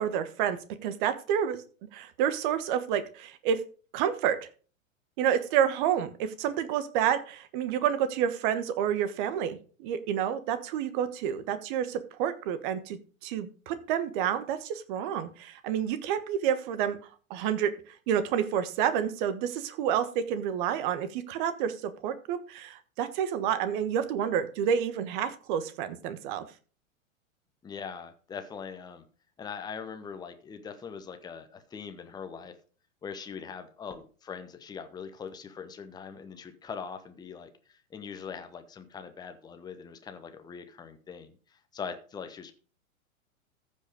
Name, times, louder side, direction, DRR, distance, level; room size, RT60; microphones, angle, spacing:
voice 1, 0.0-1.6 1.9-3.6 3.9-4.5 5.2-17.0 17.3-17.7 18.1-26.4, right 9 dB, 35° right, 12 dB, 1.3 m, -29 dB
voice 2, 27.6-29.1 29.4-32.5 33.0-42.5, left 6 dB, 10° left, 8 dB, 1.0 m, -42 dB
14.5 x 5.5 x 5.1 m, 0.39 s
figure-of-eight pair, 100°, 41 cm